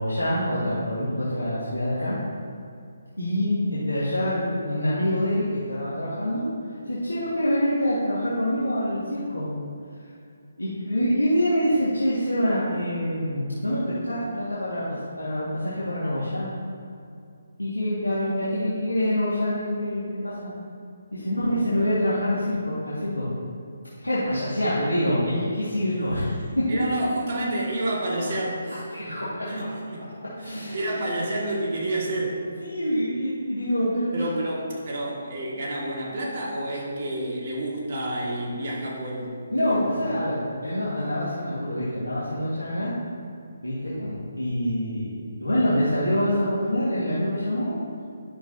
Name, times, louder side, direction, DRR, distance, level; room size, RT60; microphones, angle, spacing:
voice 1, 0.0-2.2 3.2-6.5 6.9-9.5 10.6-16.5 17.6-20.5 21.1-23.3 24.0-26.8 28.9-29.4 30.4-31.1 32.6-34.3 39.5-42.9 43.6-47.7, equal, 80° left, -10 dB, 1.9 m, -26 dB
voice 2, 26.7-30.0 30.4-32.4 34.1-40.1, right 1 dB, 40° right, -4 dB, 1.9 m, -29 dB
10.5 x 6.8 x 2.8 m, 2.4 s
figure-of-eight pair, 140°, 0 cm